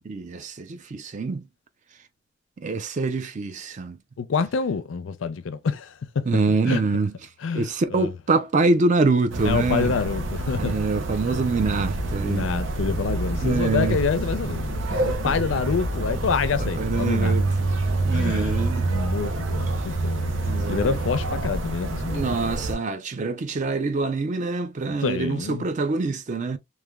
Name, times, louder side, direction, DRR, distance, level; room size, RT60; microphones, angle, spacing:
voice 1, 0.0-1.4 2.6-4.0 6.3-7.1 7.5-9.9 10.6-12.5 13.4-14.0 15.2-15.4 16.6-17.5 18.0-18.9 20.4-21.0 22.1-26.6, right 3 dB, 40° right, 0.4 m, -25 dB
voice 2, 4.2-6.3 6.7-6.8 7.4-8.1 9.5-10.8 11.2-11.4 12.1-17.4 17.9-22.6 24.8-25.7, left 5 dB, 85° left, 0.4 m, -27 dB
sound 1, 9.3-22.7, right 2 dB, 85° right, 0.6 m, -27 dB
3.2 x 2.1 x 2.2 m
head